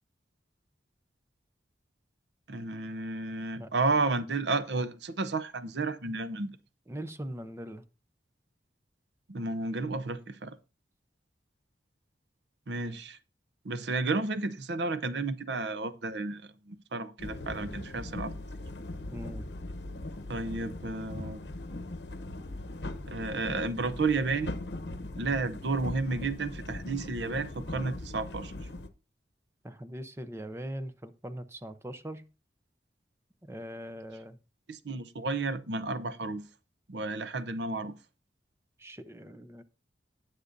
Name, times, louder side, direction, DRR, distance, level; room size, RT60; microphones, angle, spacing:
voice 1, 2.5-6.5 9.3-10.6 12.7-13.2 13.6-18.3 20.3-21.4 23.1-24.5 25.2-28.5 34.7-36.5 36.9-37.9, right 3 dB, 80° right, 0.7 m, -32 dB
voice 2, 6.9-7.8 19.1-19.5 29.6-32.2 33.4-34.4 38.8-39.6, equal, 15° right, 0.6 m, -41 dB
sound 1, 17.2-28.9, left 2 dB, 75° left, 0.9 m, -40 dB
18.0 x 6.6 x 2.6 m
head